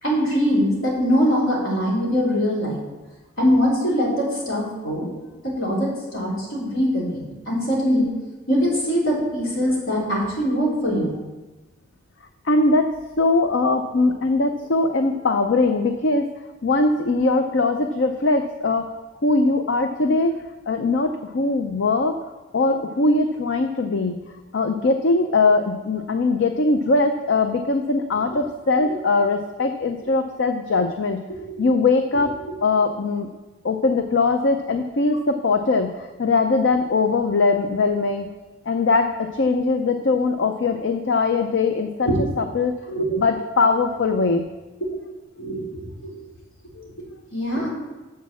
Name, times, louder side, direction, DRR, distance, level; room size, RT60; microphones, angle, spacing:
voice 1, 0.0-2.8 3.4-5.1 5.4-8.1 8.5-11.2 31.3-31.6 42.0-42.2 42.9-43.2 44.8-44.9 45.4-46.2 47.3-47.7, equal, 75° left, -5 dB, 3.5 m, -22 dB
voice 2, 12.5-12.9 13.2-16.3 16.6-18.9 19.2-20.4 20.7-22.2 22.5-24.2 24.5-31.2 31.6-32.3 32.6-33.3 33.6-38.3 38.7-42.1 42.4-42.7 43.2-44.4 46.8-46.9, left 3 dB, 60° left, 7 dB, 0.5 m, -21 dB
7.3 x 6.2 x 7.3 m, 1.1 s
head